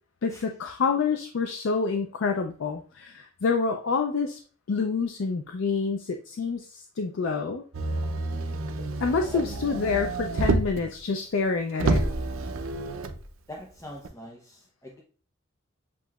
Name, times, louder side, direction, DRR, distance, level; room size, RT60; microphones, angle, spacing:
voice 1, 0.2-4.4 4.7-7.6 9.0-12.0, left 4 dB, 70° left, 5 dB, 0.4 m, -27 dB
Motor vehicle (road), 7.7-10.9 11.4-11.5 11.8-13.2 14.0-14.1, right 2 dB, 85° right, 0.6 m, -28 dB
voice 2, 13.5-15.0, right 1 dB, 15° left, -2 dB, 0.5 m, -41 dB
7.5 x 2.9 x 2.3 m, 0.41 s
head